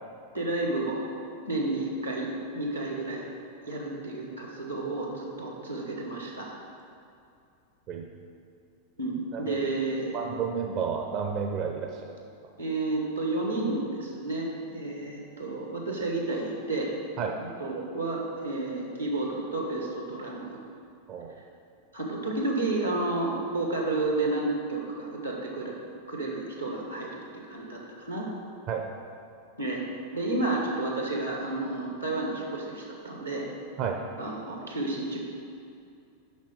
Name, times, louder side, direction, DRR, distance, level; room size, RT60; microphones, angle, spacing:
voice 1, 0.3-1.1 1.4-3.3 3.6-6.6 9.0-10.1 12.6-16.9 17.6-20.6 21.9-25.7 26.1-27.2 27.5-27.8 28.1-28.3 29.6-29.8 30.1-33.5 34.2-35.2, right 2 dB, 85° right, -1 dB, 1.5 m, -31 dB
voice 2, 10.1-12.2 17.2-17.4 21.1-21.4 28.7-28.9 33.8-34.0, right 6 dB, 40° right, 2 dB, 0.5 m, -31 dB
8.3 x 5.9 x 4.7 m, 2.5 s
figure-of-eight pair, 90°, 0 cm